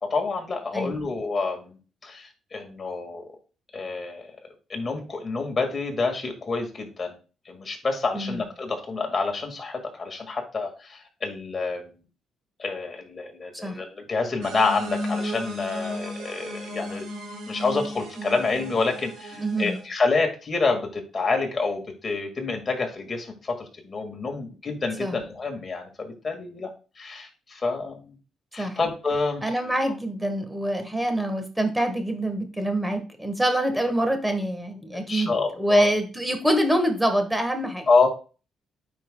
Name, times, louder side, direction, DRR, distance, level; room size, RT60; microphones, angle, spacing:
voice 1, 0.0-3.2 3.7-4.3 4.7-7.2 7.5-11.9 12.6-17.1 17.5-26.7 27.0-28.2 28.5-29.4 34.9-35.9 37.9-38.1, left 4 dB, 35° left, 2 dB, 1.9 m, -28 dB
sound 1, 14.4-19.8, equal, 85° right, 1.7 m, -35 dB
voice 2, 19.4-19.8 25.0-25.2 28.6-28.8 29.4-37.9, right 1 dB, 10° right, 6 dB, 1.4 m, -25 dB
9.1 x 4.9 x 2.2 m, 0.35 s
cardioid pair, 90°, 0 cm